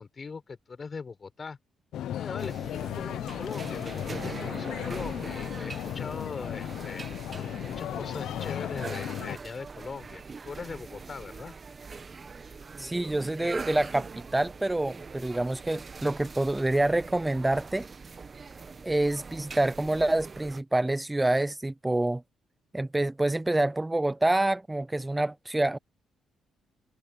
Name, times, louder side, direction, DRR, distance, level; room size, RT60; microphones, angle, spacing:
voice 1, 0.0-1.6 2.1-7.1 7.6-11.5, left 5 dB, 35° left, 5.0 m, -40 dB
sound 1, 1.9-9.4, left 11 dB, 75° left, 0.7 m, -35 dB
sound 2, 2.4-20.6, right 4 dB, 35° right, 1.2 m, -42 dB
voice 2, 12.8-17.9 18.8-22.2 22.7-25.8, right 2 dB, 10° right, 0.4 m, -27 dB
cardioid pair, 90°, 0 cm